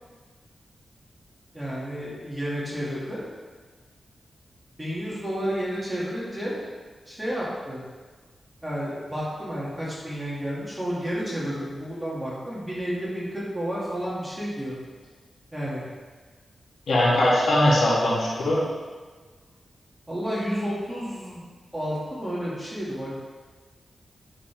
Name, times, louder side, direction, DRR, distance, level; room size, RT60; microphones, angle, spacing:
voice 1, 1.5-3.2 4.8-6.6 7.1-7.8 8.6-14.7 15.5-15.8 20.1-21.5 21.7-23.2, equal, 10° right, -7 dB, 2.4 m, -31 dB
voice 2, 16.9-18.6, left 1 dB, 85° left, -7 dB, 2.5 m, -20 dB
10.0 x 6.9 x 3.6 m, 1.4 s
wide cardioid pair, 110°, 0 cm